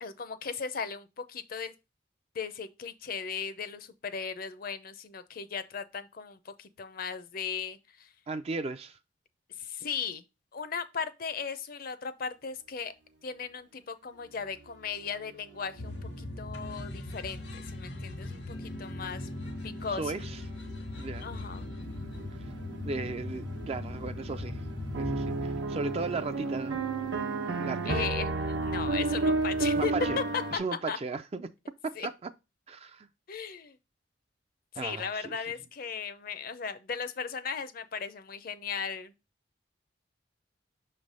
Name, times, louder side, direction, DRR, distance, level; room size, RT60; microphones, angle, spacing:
voice 1, 0.0-1.7 2.3-8.1 9.5-10.2 10.5-12.9 13.2-19.3 19.6-20.1 21.2-21.7 27.9-30.2 30.5-30.6 30.9-31.0 32.0-32.1 33.3-33.8 34.7-39.1, left 6 dB, 50° left, 0.6 m, -37 dB
voice 2, 8.3-9.0 19.9-20.4 21.0-21.3 22.8-24.6 25.0-26.8 27.6-28.1 29.7-30.2 30.5-31.5 31.8-32.3 32.7-33.1 34.8-35.3, right 3 dB, 35° right, 0.4 m, -36 dB
sound 1, 15.8-25.6, left 1 dB, 80° left, 1.4 m, -39 dB
sound 2, 16.2-16.3 18.7-30.6, right 3 dB, 80° right, 0.9 m, -33 dB
6.0 x 3.3 x 5.2 m
head